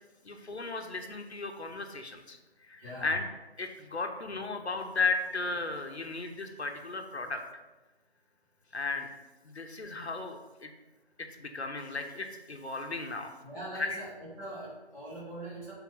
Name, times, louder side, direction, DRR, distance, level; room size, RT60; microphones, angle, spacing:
voice 1, 0.2-2.4 2.6-3.2 3.6-7.4 8.7-9.1 9.4-10.7 11.2-13.3, left 3 dB, 80° left, 5 dB, 1.0 m, -35 dB
voice 2, 2.8-3.1 13.4-15.7, right 1 dB, 15° right, -9 dB, 1.7 m, -42 dB
6.0 x 4.2 x 5.5 m, 1.2 s
figure-of-eight pair, 160°, 32 cm